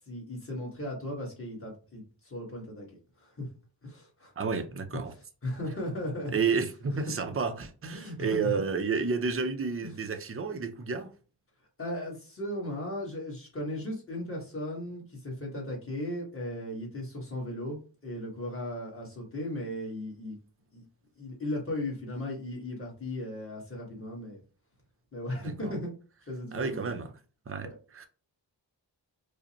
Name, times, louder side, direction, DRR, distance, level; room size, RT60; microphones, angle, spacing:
voice 1, 0.1-2.9 3.2-3.5 3.8-4.3 5.4-6.4 7.9-8.4 9.8-9.9 11.8-20.4 20.7-20.9 21.2-24.4 25.1-25.9 26.3-26.8 27.6-27.8, left 1 dB, 30° left, 1.5 m, -36 dB
voice 2, 4.4-5.1 6.3-11.1 25.4-25.7 26.5-27.1 27.5-28.1, right 5 dB, 30° right, 0.5 m, -31 dB
4.9 x 2.1 x 2.9 m
wide cardioid pair, 110°, 45 cm